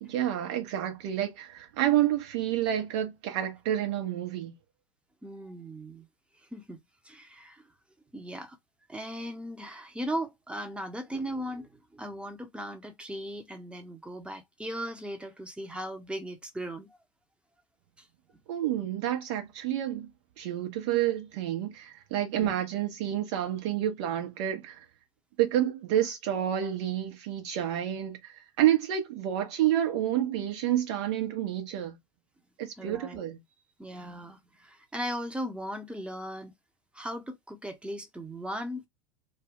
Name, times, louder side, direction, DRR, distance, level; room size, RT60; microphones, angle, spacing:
voice 1, 0.0-4.5 18.5-20.1 20.4-24.8 25.4-32.0 32.6-33.4, right 11 dB, 55° right, 1.0 m, -29 dB
voice 2, 5.2-6.1 6.5-7.6 8.1-8.6 8.9-16.9 18.0-18.1 22.3-22.5 32.8-33.2 33.8-36.5 36.9-38.9, equal, 5° right, 0.8 m, -38 dB
2.5 x 2.2 x 3.6 m
figure-of-eight pair, 80°, 17 cm